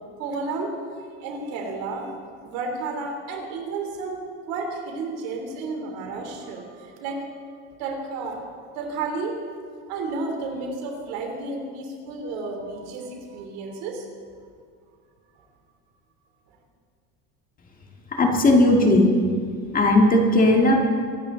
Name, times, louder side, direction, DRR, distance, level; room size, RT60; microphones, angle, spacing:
voice 1, 0.2-0.7 1.2-2.1 2.4-7.3 7.8-9.4 9.9-14.1, right 3 dB, 80° right, 2 dB, 3.4 m, -32 dB
voice 2, 18.1-19.1 19.7-20.8, left 1 dB, 25° left, 2 dB, 1.9 m, -17 dB
23.5 x 11.5 x 3.9 m, 2.1 s
cardioid pair, 145°, 33 cm